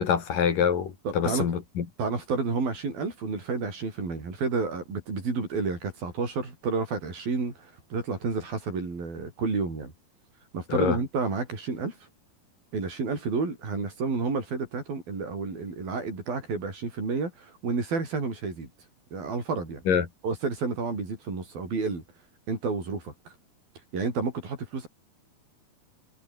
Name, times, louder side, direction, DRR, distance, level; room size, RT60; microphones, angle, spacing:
voice 1, 0.0-1.9 10.7-11.0 19.9-20.1, left 7 dB, 60° left, 4.6 m, -25 dB
voice 2, 1.1-1.5 2.0-9.9 10.5-12.0 12.7-18.7 19.1-19.8 20.2-22.0 22.5-23.3 23.9-24.9, right 4 dB, 70° right, 9.4 m, -30 dB
omnidirectional pair, 4.3 m